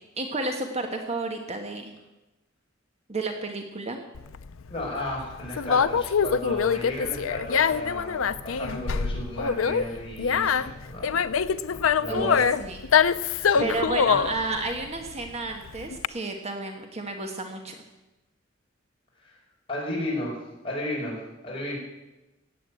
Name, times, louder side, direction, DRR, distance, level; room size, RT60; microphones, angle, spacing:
voice 1, 0.2-1.9 3.1-4.0 12.1-12.3 12.6-12.8 13.6-17.8, right 2 dB, 35° right, 4 dB, 1.4 m, -31 dB
Conversation, 4.1-16.1, left 6 dB, 90° left, 0.6 m, -25 dB
voice 2, 4.7-11.3 11.7-12.4 13.4-14.3 19.2-19.4 19.7-20.4 20.6-21.8, left 1 dB, 25° left, -3 dB, 5.6 m, -34 dB
17.0 x 8.4 x 8.3 m, 1.0 s
head